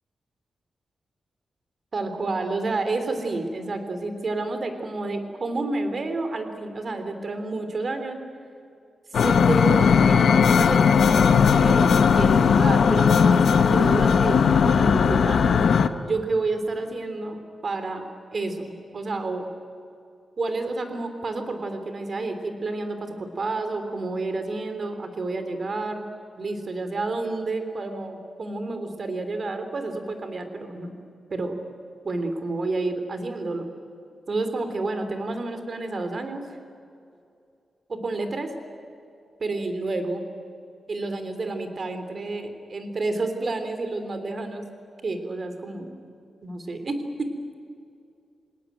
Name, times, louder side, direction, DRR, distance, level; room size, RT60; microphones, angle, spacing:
voice 1, 1.9-8.2 9.1-15.6 16.0-18.0 18.3-19.5 20.4-26.1 26.3-30.9 31.3-31.6 32.0-33.7 34.3-36.4 37.9-38.5 39.4-40.2 40.9-44.6 45.0-45.9 46.4-47.3, right 2 dB, 50° right, 8 dB, 3.3 m, -30 dB
sound 1, 9.1-15.9, left 6 dB, 75° left, 1.1 m, -18 dB
28.5 x 19.0 x 9.2 m, 2.5 s
wide cardioid pair, 105°, 0 cm